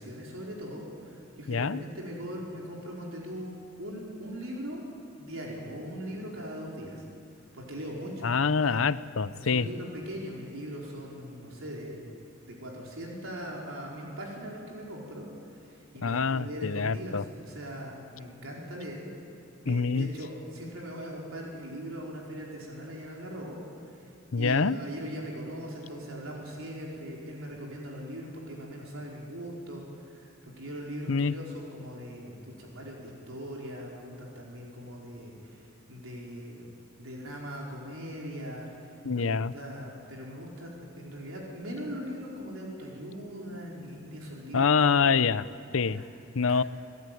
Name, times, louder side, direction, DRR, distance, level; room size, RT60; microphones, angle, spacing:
voice 1, 0.0-4.8 5.2-7.0 7.5-8.3 8.6-8.8 9.2-12.0 12.5-19.1 19.6-24.1 24.4-36.7 37.0-44.8 45.9-46.1 46.4-46.6, equal, 80° right, -2 dB, 4.8 m, -40 dB
voice 2, 1.5-1.8 8.2-9.7 16.0-17.2 19.7-20.1 24.3-24.8 31.1-31.3 39.0-39.5 44.5-45.5 45.7-46.0 46.3-46.6, left 5 dB, 75° left, 16 dB, 0.7 m, -25 dB
29.0 x 17.5 x 9.3 m, 2.5 s
head